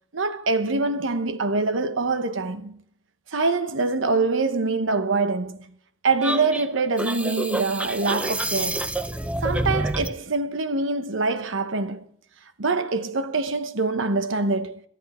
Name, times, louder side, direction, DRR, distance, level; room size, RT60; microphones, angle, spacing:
voice 1, 0.1-2.8 3.3-5.8 6.0-8.9 9.4-12.1 12.6-14.8, right 3 dB, 85° right, 1.0 m, -24 dB
sound 1, 6.2-10.2, right 1 dB, 5° right, 0.6 m, -28 dB
18.0 x 13.0 x 4.3 m
head